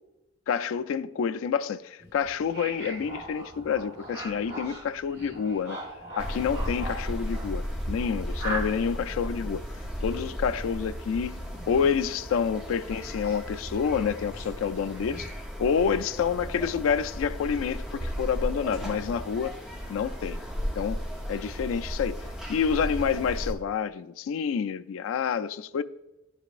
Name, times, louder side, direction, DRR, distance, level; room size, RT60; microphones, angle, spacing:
voice 1, 0.5-5.8 6.2-9.6 10.0-11.4 11.7-15.3 15.6-19.6 19.9-20.4 20.8-21.0 21.3-25.8, left 6 dB, 90° left, 0.3 m, -28 dB
sound 1, 2.0-13.6 13.9-15.4 15.9-16.4, right 1 dB, 55° right, 1.6 m, -41 dB
sound 2, 6.2-23.5, equal, 5° right, 0.7 m, -35 dB
11.0 x 5.0 x 2.5 m
head